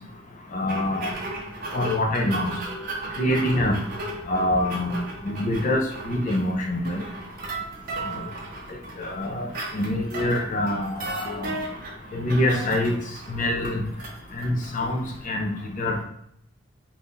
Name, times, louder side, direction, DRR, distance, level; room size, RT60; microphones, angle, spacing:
voice 1, 0.5-1.1 1.7-2.5 3.2-3.8 4.3-5.0 5.2-7.0 8.0-8.2 9.0-9.5 9.7-11.6 12.1-12.9 13.3-13.8 14.4-16.0, left 1 dB, 40° left, 1 dB, 0.5 m, -25 dB
sound 1, 0.7-15.2, right 2 dB, 45° right, 0.6 m, -36 dB
2.7 x 2.3 x 3.5 m, 0.71 s
head